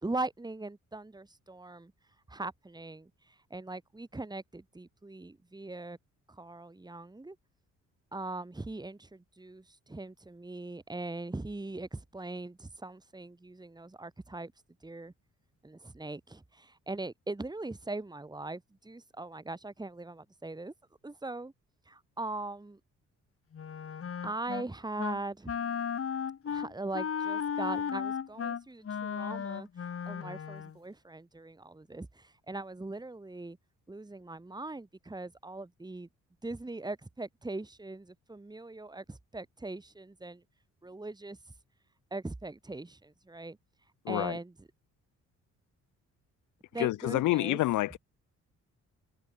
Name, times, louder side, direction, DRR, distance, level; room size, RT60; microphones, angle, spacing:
voice 1, 0.0-1.9 2.3-6.0 6.3-7.4 8.1-14.5 14.8-15.1 15.6-20.7 21.0-21.5 21.9-22.8 24.2-25.5 26.5-29.7 30.0-33.6 33.9-36.1 36.4-40.4 40.8-41.4 42.1-43.6 44.1-44.7 46.7-47.6, right 2 dB, 15° right, 3.1 m, -40 dB
Wind instrument woodwind instrument, 23.5-24.7 25.0-25.2 25.5-30.8, left 7 dB, 50° left, 3.9 m, -35 dB
voice 2, 44.1-44.4 46.8-48.0, left 17 dB, 80° left, 0.7 m, -28 dB
cardioid pair, 90°, 30 cm